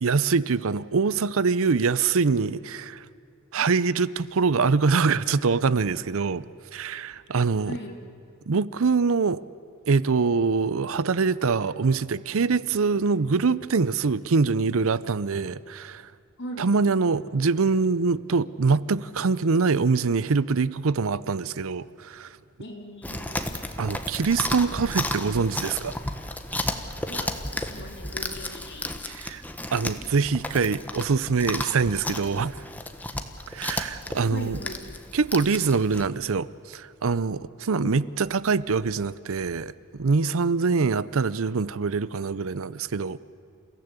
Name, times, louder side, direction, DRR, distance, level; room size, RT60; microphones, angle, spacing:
voice 1, 0.0-3.0 3.5-6.5 6.7-7.8 8.5-9.4 9.9-16.0 16.6-22.3 23.8-25.9 29.1-29.4 29.7-32.5 33.5-34.6 35.1-43.2, right 4 dB, 65° right, 0.6 m, -24 dB
voice 2, 22.6-23.6 27.1-29.1 34.3-34.8 37.8-38.0, left 1 dB, 55° left, 2.8 m, -39 dB
Chewing mastication, 23.0-36.1, left 1 dB, 10° left, 1.2 m, -33 dB
29.5 x 16.0 x 8.2 m
head